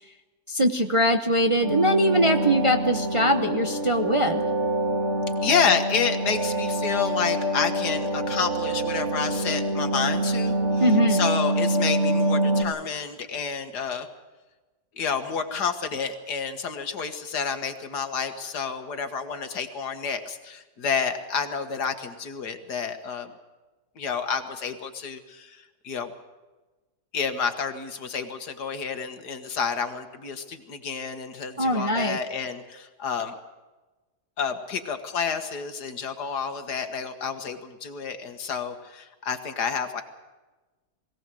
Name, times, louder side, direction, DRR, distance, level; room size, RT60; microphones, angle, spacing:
voice 1, 0.5-4.4 10.8-11.3 31.6-32.2, equal, 25° right, 5 dB, 0.8 m, -22 dB
sound 1, 1.6-12.6, right 1 dB, 45° right, 3.2 m, -26 dB
voice 2, 5.4-14.1 15.0-23.3 24.0-26.1 27.1-33.4 34.4-40.0, left 6 dB, 75° left, 8 dB, 2.1 m, -29 dB
21.5 x 17.0 x 7.7 m, 1.2 s
omnidirectional pair, 1.7 m